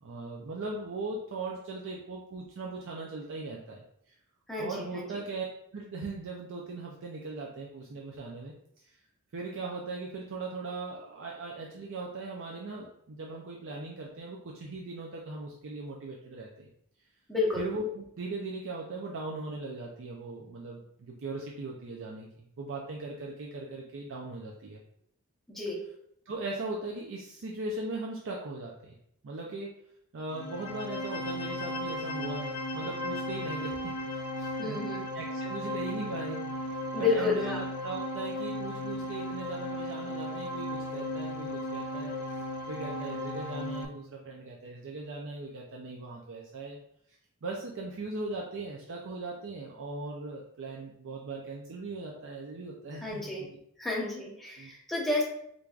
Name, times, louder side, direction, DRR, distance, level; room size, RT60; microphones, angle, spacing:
voice 1, 0.0-3.8 4.6-5.5 5.7-8.5 9.3-16.7 17.6-24.8 26.3-28.9 29.2-29.8 30.1-34.8 35.1-36.4 37.0-42.1 42.7-46.8 47.4-53.5 54.6-54.7, right 3 dB, 60° right, -2 dB, 0.5 m, -39 dB
voice 2, 4.5-5.2 17.3-17.7 25.5-25.8 34.6-35.0 36.9-37.6 53.0-53.4 53.8-55.2, left 3 dB, ahead, -5 dB, 0.8 m, -31 dB
sound 1, 30.3-43.8, left 1 dB, 80° left, 0.5 m, -36 dB
4.5 x 2.6 x 2.4 m, 0.71 s
head